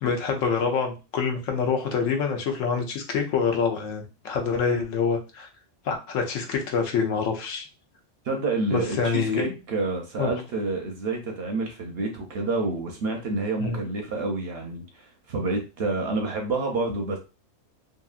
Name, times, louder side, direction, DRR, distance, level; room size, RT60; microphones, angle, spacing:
voice 1, 0.0-5.5 5.8-7.7 8.7-9.5 10.2-10.3 13.6-13.8, left 5 dB, 80° left, 4 dB, 1.0 m, -26 dB
voice 2, 8.2-17.2, right 3 dB, 60° right, 3 dB, 0.7 m, -28 dB
2.9 x 2.7 x 2.3 m, 0.31 s
omnidirectional pair, 1.4 m